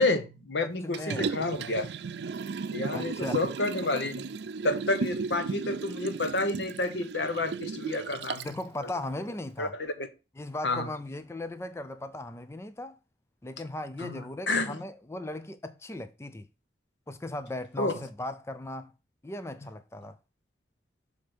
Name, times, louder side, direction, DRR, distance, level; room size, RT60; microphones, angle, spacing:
voice 1, 0.0-1.9 2.7-4.2 4.6-8.5 9.6-10.1 10.6-10.9 14.0-14.8 17.8-17.9, left 2 dB, 85° left, 1.1 m, -29 dB
voice 2, 0.6-1.3 2.9-3.4 8.4-9.8 10.4-13.0 13.4-16.5 17.1-18.9 19.2-20.2, left 1 dB, 15° left, 0.4 m, -37 dB
Liquid, 0.9-8.6 9.0-9.1, right 4 dB, 70° right, 0.4 m, -35 dB
6.8 x 3.5 x 6.1 m
head